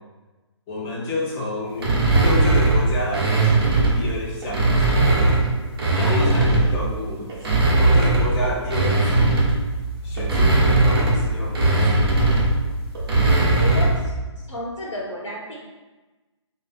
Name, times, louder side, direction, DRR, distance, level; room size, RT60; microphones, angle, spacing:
voice 1, 0.7-5.3 5.9-7.3 7.8-9.4 10.0-12.5, left 1 dB, 20° left, -6 dB, 0.8 m, -30 dB
sound 1, 1.8-4.0 4.4-6.8 7.3-14.0, right 2 dB, 50° right, 1.1 m, -19 dB
voice 2, 5.9-6.3 13.6-13.9 14.5-15.5, equal, 65° left, -7 dB, 1.3 m, -31 dB
3.7 x 2.6 x 3.6 m, 1.1 s
hypercardioid pair, 150°, 16 cm